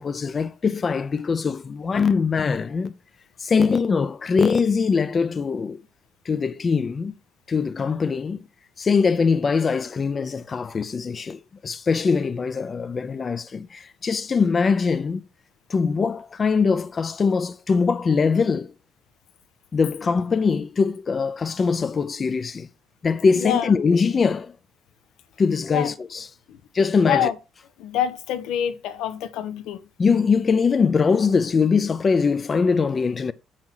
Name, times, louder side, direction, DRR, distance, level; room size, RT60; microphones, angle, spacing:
voice 1, 0.0-2.9 3.4-5.8 6.2-7.1 7.5-8.5 8.8-15.2 15.7-18.7 19.7-22.7 23.0-24.6 25.4-26.3 26.7-27.3 30.0-33.3, left 5 dB, 25° left, 0.4 m, -22 dB
voice 2, 23.4-23.7 25.7-25.9 26.5-26.6 27.0-27.3 27.8-29.8, left 9 dB, 90° left, 1.0 m, -26 dB
8.7 x 5.7 x 4.6 m
cardioid pair, 180°, 0 cm